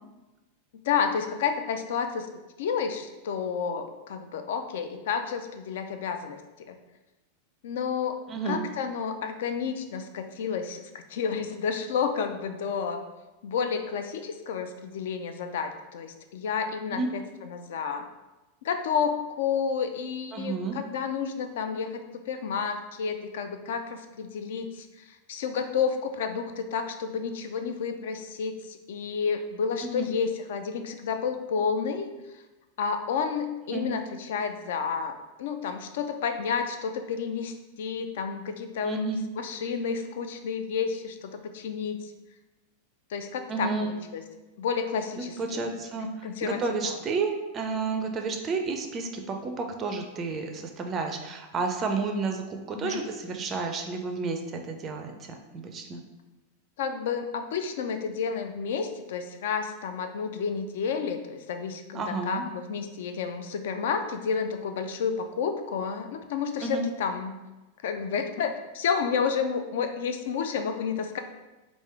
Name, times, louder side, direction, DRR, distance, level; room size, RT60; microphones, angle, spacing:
voice 1, 0.8-2.3 2.6-6.4 6.7-6.8 7.6-13.0 13.4-18.1 18.6-24.9 25.3-32.1 32.8-39.1 39.4-42.1 43.1-44.2 44.6-45.7 46.2-47.0 52.7-53.1 56.8-67.4 67.8-71.2, left 6 dB, 55° left, 7 dB, 0.3 m, -30 dB
voice 2, 8.3-8.6 16.9-17.1 20.3-20.8 29.8-30.1 33.7-33.8 38.8-39.2 43.5-43.9 45.2-56.0 61.9-62.4 66.6-66.8, right 4 dB, 25° right, 4 dB, 0.4 m, -31 dB
3.4 x 2.5 x 3.4 m, 1.1 s
figure-of-eight pair, 90°, 0 cm